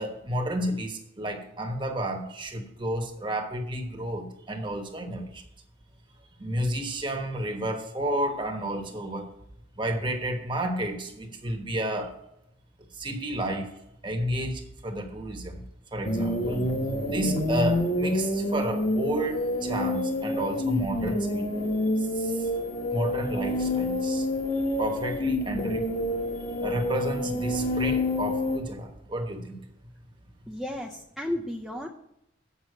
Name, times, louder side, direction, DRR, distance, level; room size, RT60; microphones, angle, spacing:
voice 1, 0.0-5.4 6.4-9.3 9.8-12.1 12.9-13.7 14.0-15.6 15.9-16.7 17.1-21.5 22.2-22.5 22.9-24.3 24.8-25.9 26.6-29.6, right 1 dB, 25° right, 4 dB, 1.2 m, -31 dB
sound 1, 16.0-28.6, left 1 dB, 45° left, 1.5 m, -28 dB
voice 2, 30.5-31.9, left 1 dB, ahead, -3 dB, 0.6 m, -33 dB
8.2 x 5.5 x 7.8 m, 0.81 s
head